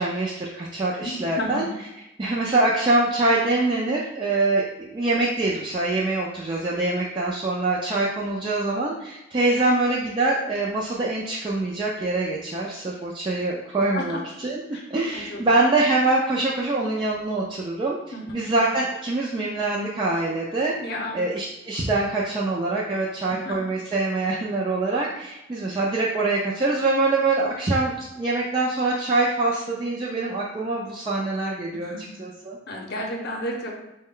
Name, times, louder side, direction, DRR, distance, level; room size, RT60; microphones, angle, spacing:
voice 1, 0.0-1.7 2.2-14.6 14.9-18.0 18.3-20.8 21.1-31.9 32.2-32.6, right 2 dB, 25° right, -5 dB, 0.4 m, -24 dB
voice 2, 1.0-1.7 13.8-14.2 14.7-14.8 15.1-15.4 18.1-18.5 20.8-21.2 23.3-23.6 31.7-32.1 32.7-33.7, left 1 dB, 55° left, 1 dB, 0.7 m, -32 dB
4.1 x 2.1 x 3.6 m, 0.94 s
head